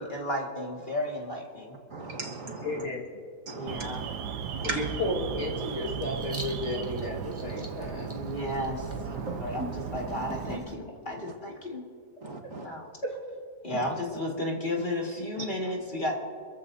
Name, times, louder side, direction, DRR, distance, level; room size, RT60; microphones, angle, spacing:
voice 1, 0.0-1.8 3.5-4.1 8.1-11.8 12.6-12.9 13.6-16.2, left 1 dB, 30° left, -1 dB, 2.0 m, -33 dB
voice 2, 1.9-2.9 3.5-3.8 4.6-4.9 9.1-9.6 12.2-12.7 13.7-13.9 15.4-15.5, right 3 dB, 55° right, 1 dB, 1.9 m, -37 dB
voice 3, 2.6-3.0 4.6-8.1, left 2 dB, 45° left, -1 dB, 2.0 m, -33 dB
Alarm, 3.7-10.6, right 7 dB, 90° right, 1.4 m, -36 dB
Writing, 5.6-10.8, equal, 10° right, 1.3 m, -44 dB
26.5 x 14.5 x 2.7 m, 2.1 s
omnidirectional pair, 1.7 m